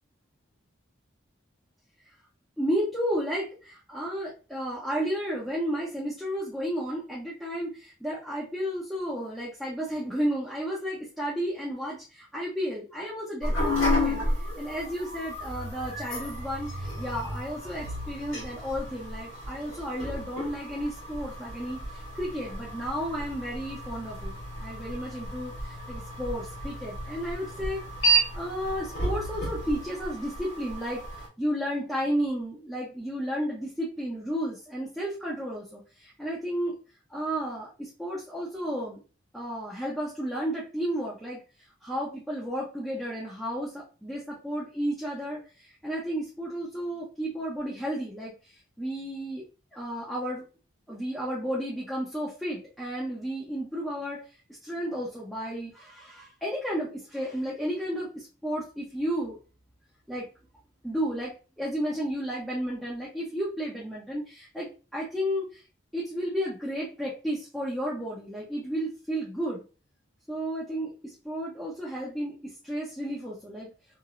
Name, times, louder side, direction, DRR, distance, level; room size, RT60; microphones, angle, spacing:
voice 1, 2.6-27.8 28.1-31.0 31.4-36.8 37.1-39.0 39.3-41.4 41.8-49.5 49.7-50.5 50.9-54.2 54.6-59.4 60.1-60.3 60.8-65.6 65.9-69.6 70.3-73.7, equal, ahead, -6 dB, 0.6 m, -33 dB
sound 1, 13.4-31.3, right 1 dB, 65° left, 1.3 m, -32 dB
3.0 x 2.5 x 2.4 m, 0.34 s
head